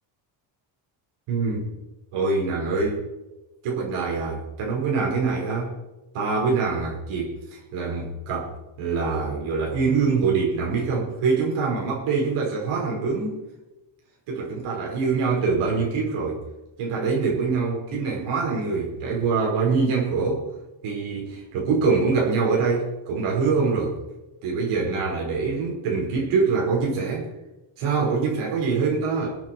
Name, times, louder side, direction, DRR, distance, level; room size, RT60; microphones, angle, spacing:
voice 1, 1.3-1.7 2.1-3.0 3.6-5.7 6.1-8.5 8.8-13.4 14.3-16.4 16.8-20.4 20.8-24.0 24.4-27.3 27.8-29.3, right 4 dB, 90° right, -3 dB, 5.3 m, -24 dB
22.0 x 8.9 x 4.7 m, 1.0 s
cardioid pair, 180°, 49 cm